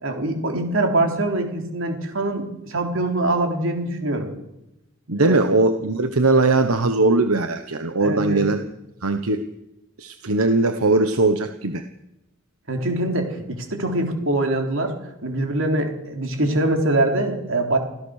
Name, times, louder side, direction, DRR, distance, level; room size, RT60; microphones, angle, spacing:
voice 1, 0.0-4.3 5.2-5.4 8.0-8.4 12.7-14.9 15.2-17.8, right 2 dB, 65° right, 3 dB, 3.7 m, -23 dB
voice 2, 5.1-8.6 9.0-9.4 10.0-11.8, right 2 dB, 85° right, 8 dB, 1.2 m, -20 dB
25.5 x 15.5 x 6.6 m, 0.89 s
head